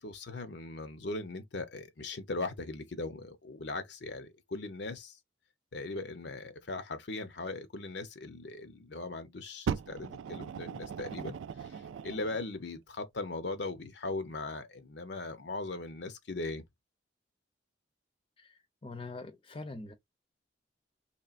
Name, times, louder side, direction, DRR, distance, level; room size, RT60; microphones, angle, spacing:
voice 1, 0.0-5.2 5.7-16.6, left 2 dB, 60° left, 0.7 m, -39 dB
Fire, 9.7-12.5 13.3-13.4, right 7 dB, 80° right, 0.3 m, -38 dB
voice 2, 18.4-19.9, left 2 dB, 30° left, 0.7 m, -44 dB
4.3 x 3.2 x 2.4 m
head